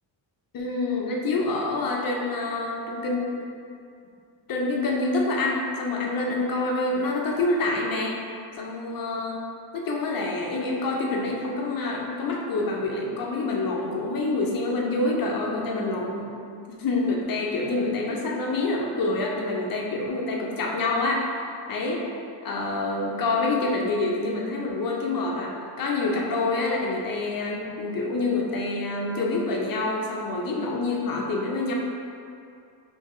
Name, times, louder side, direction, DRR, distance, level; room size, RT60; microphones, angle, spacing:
voice 1, 0.5-3.4 4.5-8.2 8.6-9.4 9.7-16.3 16.8-21.2 21.7-22.0 22.4-31.7, left 2 dB, 50° left, -1 dB, 0.5 m, -27 dB
3.6 x 2.7 x 3.1 m, 2.5 s
wide cardioid pair, 170°, 45 cm